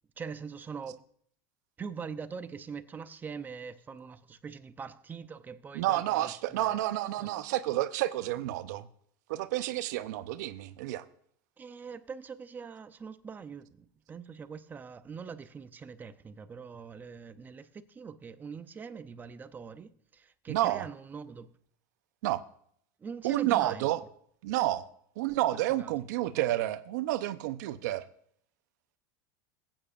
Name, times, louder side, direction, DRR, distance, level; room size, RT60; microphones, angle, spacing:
voice 1, 0.2-1.1 1.8-6.8 7.2-7.3 11.6-21.5 23.0-24.1 25.8-26.0 26.3-26.5, right 6 dB, 20° right, 0.6 m, -43 dB
voice 2, 5.7-8.9 9.3-11.0 20.5-20.8 22.2-22.4 23.2-24.0 24.4-24.9 25.2-28.0, right 15 dB, 80° right, 0.7 m, -30 dB
18.0 x 9.0 x 2.5 m
supercardioid pair, 135°, 9 cm